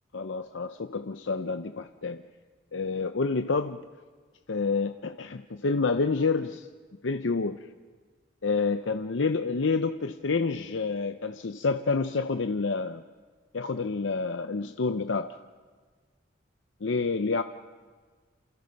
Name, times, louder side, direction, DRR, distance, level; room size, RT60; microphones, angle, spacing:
voice 1, 0.1-2.2 2.7-3.8 4.5-6.7 7.0-7.6 8.4-13.0 13.5-15.4 16.8-17.4, left 4 dB, 80° left, 8 dB, 0.7 m, -28 dB
28.0 x 27.5 x 5.4 m, 1.5 s
head